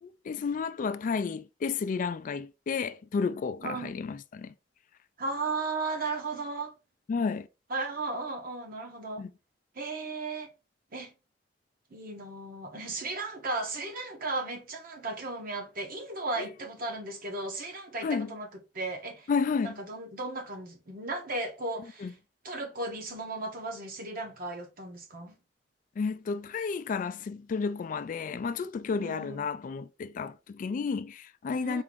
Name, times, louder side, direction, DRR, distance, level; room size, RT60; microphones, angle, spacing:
voice 1, 0.0-4.5 7.1-7.5 9.2-9.3 18.0-18.3 19.3-19.8 22.0-22.1 26.0-31.8, left 5 dB, 45° left, 0.3 m, -32 dB
voice 2, 3.6-4.0 5.2-6.7 7.7-9.3 9.7-10.5 10.9-11.1 11.9-18.5 18.7-19.3 19.6-22.1 22.4-25.3 29.0-29.5 31.6-31.8, right 3 dB, 55° right, 1.1 m, -35 dB
4.5 x 2.5 x 3.5 m
head